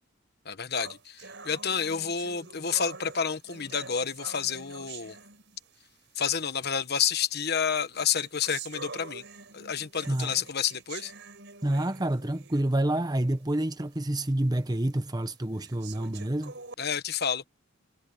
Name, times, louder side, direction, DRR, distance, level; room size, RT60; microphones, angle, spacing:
voice 1, 0.4-5.2 6.2-9.2 9.5-11.1 16.8-17.5, left 7 dB, 50° left, 1.2 m, -29 dB
sound 1, 0.7-5.9 6.7-6.8 7.6-12.9 13.3-13.4 13.9-14.0 14.7-14.8 15.6-16.7, right 5 dB, 55° right, 7.4 m, -46 dB
voice 2, 10.1-10.4 11.6-16.5, right 1 dB, 20° right, 0.9 m, -28 dB
head